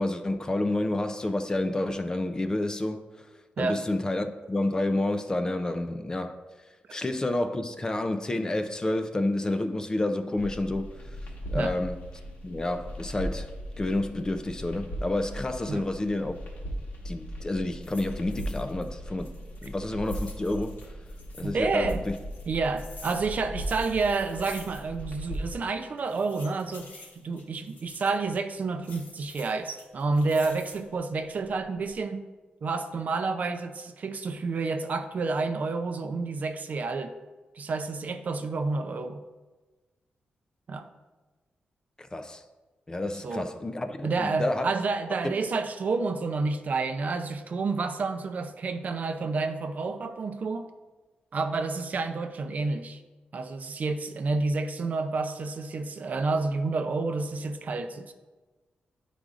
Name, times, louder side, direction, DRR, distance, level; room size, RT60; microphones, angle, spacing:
voice 1, 0.0-3.1 3.6-6.4 6.9-10.9 11.5-12.0 12.4-13.5 13.8-16.3 17.0-19.3 19.6-20.8 21.4-22.1 42.0-42.4 42.9-44.7 45.2-45.3, left 2 dB, 20° left, 0.4 m, -29 dB
sound 1, 10.4-25.6, equal, 60° left, 1.4 m, -38 dB
sound 2, 17.1-17.4 17.8-18.9 19.2-21.5 21.9-25.1 25.3-25.4 26.0-28.2 28.8-30.9 31.4-32.0, left 3 dB, 85° left, 2.0 m, -49 dB
voice 2, 21.4-22.0 22.5-32.2 32.6-37.1 37.6-39.2 40.7-40.9 43.2-43.5 44.0-50.7 51.3-53.0 53.3-58.1, right 3 dB, 50° right, 0.5 m, -29 dB
10.0 x 5.0 x 2.5 m
wide cardioid pair, 130°, 3 cm